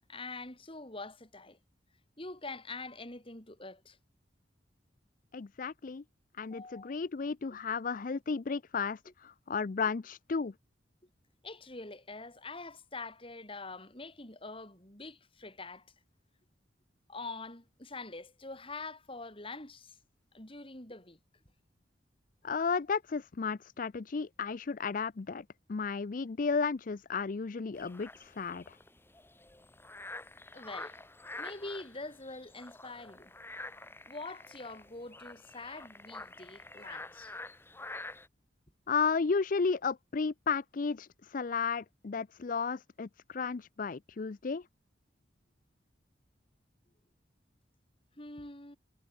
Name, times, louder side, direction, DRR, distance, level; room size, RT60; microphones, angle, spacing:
voice 1, 0.1-1.6 2.2-4.0 6.5-7.0 11.4-15.9 17.1-20.0 20.3-21.2 30.5-31.0 31.4-33.3 34.1-37.3 48.2-48.8, left 3 dB, 30° left, 4.4 m, -45 dB
voice 2, 5.3-6.0 6.4-10.5 22.4-28.8 38.9-44.6, left 5 dB, 45° left, 0.5 m, -33 dB
sound 1, 27.7-38.3, left 2 dB, 10° left, 2.3 m, -47 dB
head